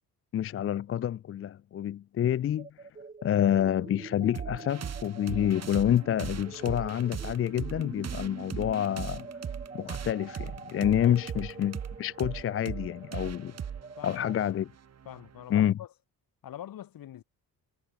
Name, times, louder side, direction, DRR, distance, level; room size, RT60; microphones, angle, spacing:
voice 1, 0.3-2.7 3.2-9.3 9.7-13.6 14.0-14.7 15.5-15.7, left 10 dB, 35° left, 0.4 m, -28 dB
sound 1, 2.6-14.5, right 4 dB, 20° right, 3.9 m, -46 dB
sound 2, 4.3-15.4, right 8 dB, 40° right, 5.1 m, -39 dB
voice 2, 11.0-11.3 14.0-14.6 15.0-15.9 16.4-17.2, left 11 dB, 60° left, 3.0 m, -44 dB
cardioid pair, 155°, 38 cm